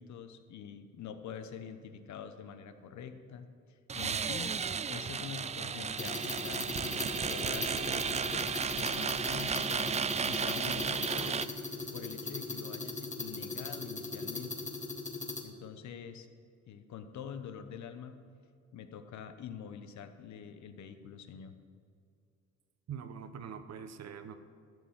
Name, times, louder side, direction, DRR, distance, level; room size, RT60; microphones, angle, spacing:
voice 1, 0.0-3.5 3.9-4.6 4.9-8.5 8.8-11.4 11.9-14.7 15.4-16.3 16.7-18.2 18.7-21.5, left 7 dB, 70° left, 9 dB, 1.0 m, -45 dB
sound 1, 3.9-11.5, right 6 dB, 25° right, 0.4 m, -34 dB
sound 2, 6.0-15.4, left 3 dB, 25° left, 1.5 m, -39 dB
voice 2, 22.9-24.4, right 7 dB, 60° right, 9 dB, 1.0 m, -43 dB
12.0 x 6.3 x 7.5 m, 2.3 s
cardioid pair, 90°, 30 cm